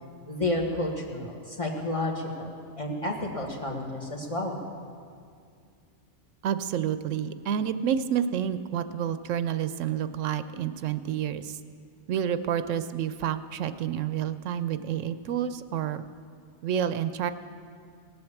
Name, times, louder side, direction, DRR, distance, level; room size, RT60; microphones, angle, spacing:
voice 1, 0.3-4.6, left 1 dB, 25° left, 0 dB, 1.6 m, -31 dB
voice 2, 6.4-11.6 12.1-16.0 16.6-17.3, right 9 dB, 85° right, 12 dB, 0.9 m, -29 dB
19.0 x 7.8 x 7.2 m, 2.2 s
omnidirectional pair, 1.3 m